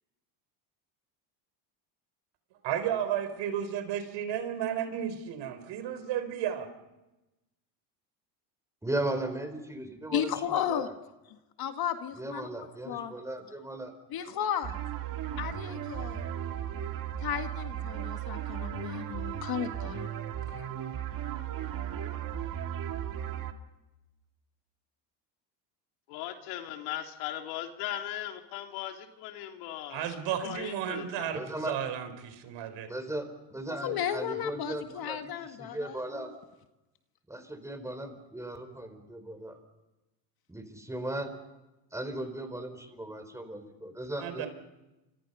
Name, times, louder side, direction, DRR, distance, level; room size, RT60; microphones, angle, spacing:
voice 1, 2.6-6.7 29.9-32.9 44.2-44.5, right 9 dB, 60° right, 9 dB, 4.3 m, -33 dB
voice 2, 8.8-10.9 12.1-13.9 22.3-22.4 31.3-31.8 32.9-35.3 35.6-36.3 37.3-39.6 40.5-41.3 41.9-44.5, right 1 dB, 5° right, 8 dB, 4.4 m, -37 dB
voice 3, 10.1-10.9 11.6-13.1 14.1-14.8 15.4-16.2 17.2-20.1 20.5-20.7 33.7-36.3, left 9 dB, 45° left, 7 dB, 1.9 m, -34 dB
sound 1, 14.6-23.5, right 10 dB, 40° right, 2.1 m, -36 dB
voice 4, 26.1-31.3, left 12 dB, 80° left, 4 dB, 3.1 m, -38 dB
30.0 x 26.5 x 5.6 m, 1.0 s
supercardioid pair, 115°, 50 cm